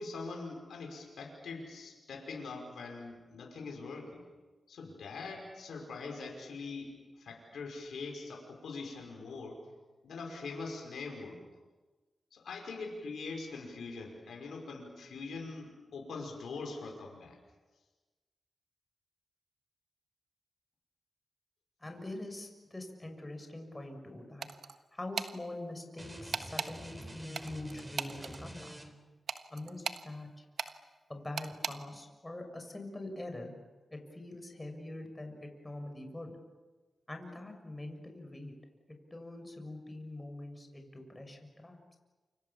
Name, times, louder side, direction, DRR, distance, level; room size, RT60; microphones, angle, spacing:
voice 1, 0.0-4.2 4.7-9.6 10.0-11.4 12.3-17.4, left 3 dB, 85° left, 1 dB, 5.5 m, -43 dB
voice 2, 21.8-24.5 24.9-28.7 29.5-30.4 31.1-33.5 34.1-36.3 37.1-38.5 39.1-42.0, left 1 dB, 25° left, 5 dB, 6.7 m, -44 dB
sound 1, 24.4-24.8 25.2-25.3 26.3-26.7 27.3-28.4 29.3-30.0 30.6-30.7 31.4-31.8, right 6 dB, 80° right, 1.3 m, -37 dB
sound 2, 26.0-29.2, right 1 dB, 20° right, 4.5 m, -47 dB
29.5 x 26.5 x 7.2 m, 1.3 s
cardioid pair, 45°, 0 cm